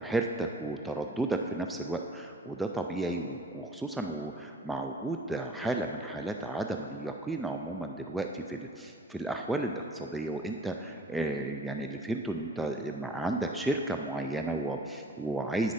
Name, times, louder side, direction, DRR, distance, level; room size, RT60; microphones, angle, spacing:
voice 1, 0.0-15.7, right 2 dB, 5° right, 3 dB, 0.3 m, -33 dB
8.5 x 6.1 x 4.9 m, 2.6 s
hypercardioid pair, 135°, 0 cm